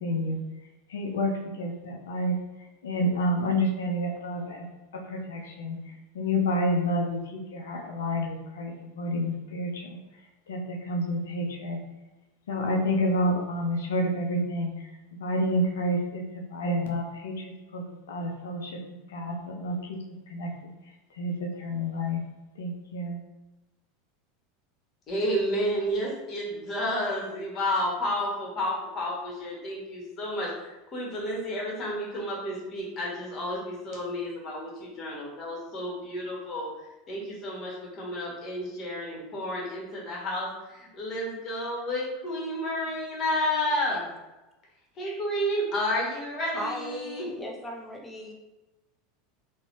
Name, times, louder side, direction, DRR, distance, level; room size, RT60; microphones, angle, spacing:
voice 1, 0.0-0.4 0.9-2.3 2.8-4.6 5.0-10.0 10.5-11.8 12.5-14.7 15.2-18.8 19.1-20.0 20.3-20.5 21.2-22.2 22.6-23.2, equal, 70° left, 2 dB, 0.5 m, -29 dB
voice 2, 25.1-36.7 37.1-44.1 44.9-47.3, equal, 35° left, -3 dB, 1.3 m, -31 dB
voice 3, 46.5-48.3, equal, 5° left, -2 dB, 0.7 m, -36 dB
3.8 x 2.3 x 3.0 m, 1.1 s
figure-of-eight pair, 80°, 0 cm